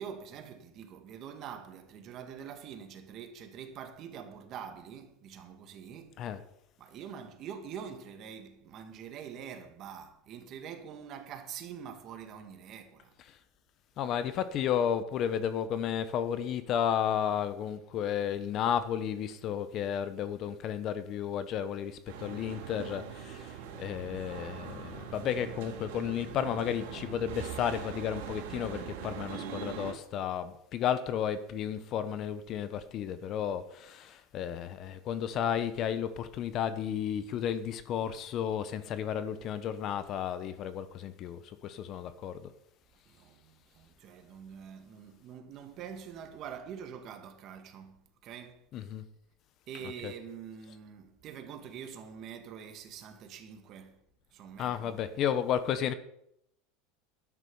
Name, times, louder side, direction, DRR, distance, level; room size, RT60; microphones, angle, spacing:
voice 1, 0.0-6.2 6.8-13.1 43.1-48.6 49.7-54.0 54.3-55.0, right 8 dB, 40° right, 2.1 m, -45 dB
voice 2, 14.0-42.5 48.7-49.0 50.0-50.1 54.6-55.9, left 9 dB, 40° left, 1.1 m, -33 dB
sound 1, 22.1-29.9, right 8 dB, 80° right, 2.8 m, -42 dB
12.5 x 10.0 x 5.5 m
supercardioid pair, 135°, 0 cm